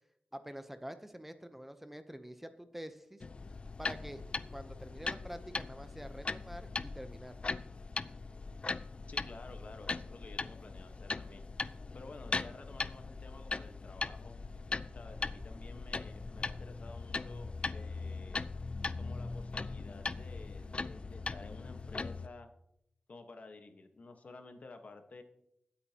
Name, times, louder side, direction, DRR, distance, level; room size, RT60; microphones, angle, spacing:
voice 1, 0.3-3.3 3.8-4.2 4.5-7.4, equal, 5° right, 9 dB, 0.7 m, -47 dB
sound 1, 3.2-22.3, left 3 dB, 40° left, 0.4 m, -40 dB
voice 2, 9.1-11.4 11.9-14.4 14.9-18.5 19.0-22.5 23.1-25.2, left 3 dB, 60° left, 6 dB, 1.2 m, -52 dB
22.0 x 8.5 x 2.9 m, 0.79 s
wide cardioid pair, 100°, 3 cm